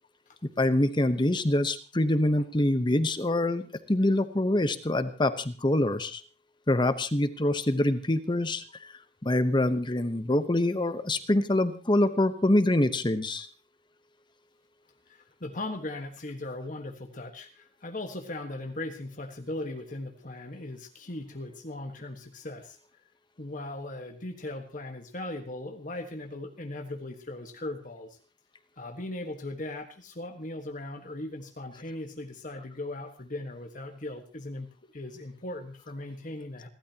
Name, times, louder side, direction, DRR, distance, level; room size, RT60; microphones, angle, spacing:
voice 1, 0.6-6.2 6.7-8.9 9.2-13.5, left 1 dB, 25° left, 11 dB, 1.0 m, -25 dB
voice 2, 15.1-22.8 23.4-28.2 28.8-36.7, left 2 dB, 50° left, 4 dB, 1.5 m, -38 dB
29.0 x 12.5 x 2.9 m, 0.33 s
head